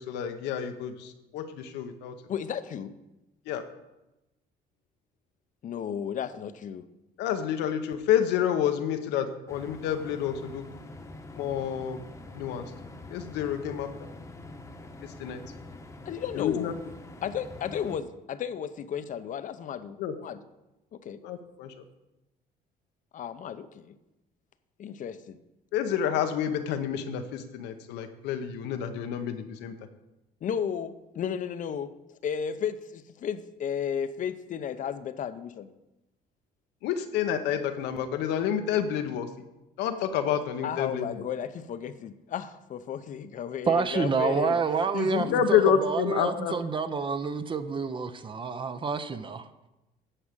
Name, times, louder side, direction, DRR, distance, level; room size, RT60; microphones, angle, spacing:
voice 1, 0.0-2.2 3.5-3.7 7.2-10.7 11.3-12.0 12.3-12.7 13.1-14.1 15.0-15.4 16.4-16.7 20.0-20.1 21.2-21.8 25.7-29.8 36.8-39.3 39.8-41.2 45.0-46.6, left 9 dB, 90° left, 0.9 m, -29 dB
voice 2, 2.3-2.9 5.6-6.9 16.1-16.7 17.2-20.4 20.9-21.2 23.1-24.0 24.8-25.4 30.4-31.9 32.2-35.7 40.6-44.6 44.9-45.4, left 8 dB, 50° left, 0.7 m, -33 dB
sound 1, 9.5-18.0, left 2 dB, 15° left, 1.0 m, -45 dB
voice 3, 43.7-49.5, right 5 dB, 30° right, 0.7 m, -28 dB
10.0 x 5.0 x 7.4 m
cardioid pair, 110°, 17 cm